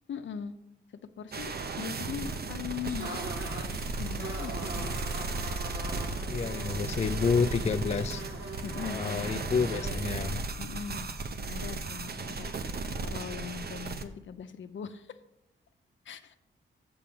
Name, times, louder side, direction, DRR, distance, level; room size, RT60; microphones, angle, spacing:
voice 1, 0.1-0.5 1.2-3.2 4.0-4.9 8.6-9.4 10.6-11.1 11.5-12.5 13.0-15.2 16.0-16.4, left 7 dB, 70° left, 10 dB, 0.7 m, -40 dB
sound 1, 1.3-14.1, right 3 dB, 50° right, 0.8 m, -35 dB
sound 2, 2.6-10.0, right 2 dB, 75° right, 2.3 m, -41 dB
voice 2, 6.3-8.2 8.8-10.4, left 5 dB, 35° left, 11 dB, 0.4 m, -29 dB
7.0 x 6.9 x 5.7 m, 0.81 s
cardioid pair, 60°, 20 cm